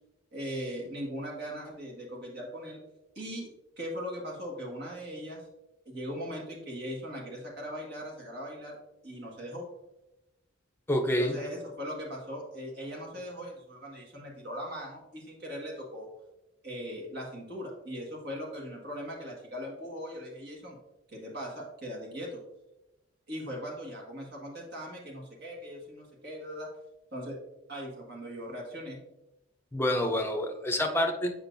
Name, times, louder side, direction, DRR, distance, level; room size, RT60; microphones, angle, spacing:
voice 1, 0.3-2.8 3.1-3.5 3.8-5.4 5.8-8.8 9.0-9.6 11.2-16.1 16.6-20.8 21.1-22.4 23.3-26.7 27.1-27.4 27.7-29.0, equal, 55° right, -1 dB, 1.7 m, -39 dB
voice 2, 10.9-11.4 29.7-31.3, left 1 dB, 10° left, 4 dB, 0.6 m, -27 dB
7.2 x 5.4 x 2.6 m, 0.93 s
head